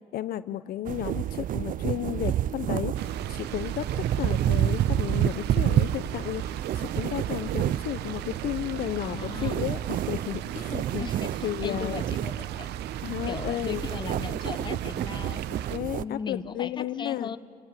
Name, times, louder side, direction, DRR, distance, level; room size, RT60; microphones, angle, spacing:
voice 1, 0.1-11.1 11.4-12.0 13.0-13.8 15.6-17.4, left 12 dB, 65° left, 14 dB, 0.7 m, -33 dB
sound 1, 0.8-16.0, right 11 dB, 55° right, 0.5 m, -29 dB
sound 2, 2.9-15.8, right 12 dB, 80° right, 0.9 m, -41 dB
voice 2, 9.0-9.6 11.0-12.7 13.3-15.4 16.0-17.4, left 6 dB, 25° left, 13 dB, 0.8 m, -37 dB
27.0 x 18.5 x 9.0 m, 2.2 s
cardioid pair, 110°, 17 cm